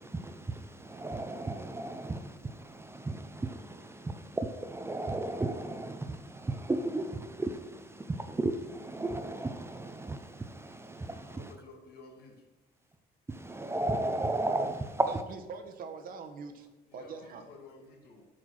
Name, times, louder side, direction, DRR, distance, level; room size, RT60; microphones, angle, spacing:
voice 1, 0.0-11.5 13.3-15.2, right 2 dB, 15° right, 0.6 m, -34 dB
voice 2, 11.3-12.4 16.9-18.3, left 2 dB, 70° left, 2.2 m, -52 dB
voice 3, 15.1-16.7 16.9-17.4, right 5 dB, 60° right, 1.1 m, -43 dB
8.6 x 4.5 x 6.4 m
cardioid pair, 110°, 17 cm